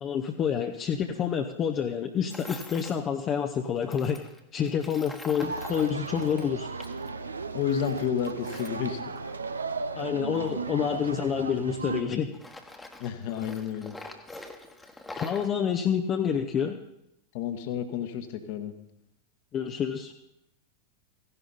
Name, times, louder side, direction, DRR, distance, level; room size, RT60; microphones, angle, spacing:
voice 1, 0.0-4.2 4.5-6.7 9.9-12.3 15.2-16.8 19.5-20.1, left 8 dB, 30° left, 4 dB, 0.8 m, -28 dB
Tools, 2.3-3.0 3.8-7.1 7.4-9.7 10.3-12.0 12.3-15.5, left 2 dB, 10° left, 1.3 m, -45 dB
sound 1, 5.4-12.0, right 4 dB, 75° right, 0.7 m, -35 dB
voice 2, 7.5-9.0 13.0-13.9 17.3-18.7, left 8 dB, 50° left, 8 dB, 1.4 m, -31 dB
15.5 x 11.0 x 4.1 m, 0.81 s
figure-of-eight pair, 90°, 0 cm